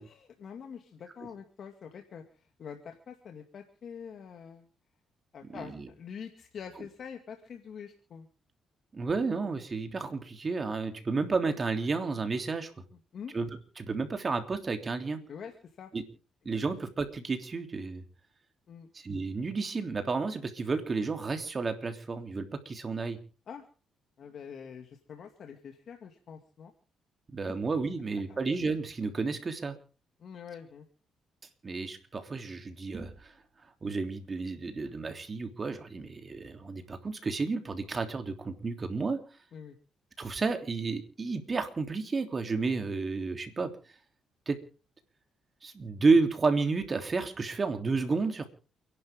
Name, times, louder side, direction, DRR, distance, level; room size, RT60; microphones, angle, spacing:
voice 1, 0.0-4.7 5.3-8.3 12.9-13.4 15.3-15.9 18.7-18.9 23.5-23.6 24.2-26.7 27.5-27.6 28.3-28.4 30.2-30.9 39.5-39.8, left 7 dB, 60° left, 5 dB, 2.3 m, -45 dB
voice 2, 5.5-5.8 8.9-12.7 13.3-13.5 13.8-15.2 15.9-16.0 16.4-18.0 18.9-23.2 27.3-29.8 31.6-33.3 33.8-39.2 40.2-43.7 44.5-44.6 45.6-48.5, right 4 dB, 35° right, 6 dB, 3.3 m, -31 dB
29.0 x 11.5 x 3.7 m, 0.37 s
cardioid pair, 90°, 0 cm